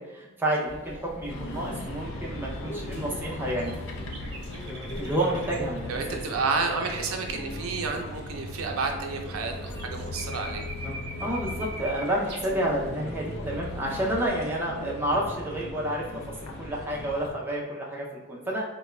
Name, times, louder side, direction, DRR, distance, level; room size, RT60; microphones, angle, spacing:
voice 1, 0.1-3.7 5.0-6.2 11.2-16.0 16.4-18.6, right 1 dB, 10° right, -4 dB, 0.6 m, -29 dB
sound 1, 0.6-14.3, equal, 30° left, 0.9 m, -43 dB
sound 2, 1.3-17.3, left 1 dB, 75° left, 0.4 m, -39 dB
sound 3, 3.4-5.6 9.2-9.4 9.6-12.5, right 1 dB, 50° right, 0.7 m, -42 dB
voice 2, 5.9-10.6, right 4 dB, 90° right, 3 dB, 0.5 m, -30 dB
3.5 x 2.2 x 3.1 m, 1.1 s
head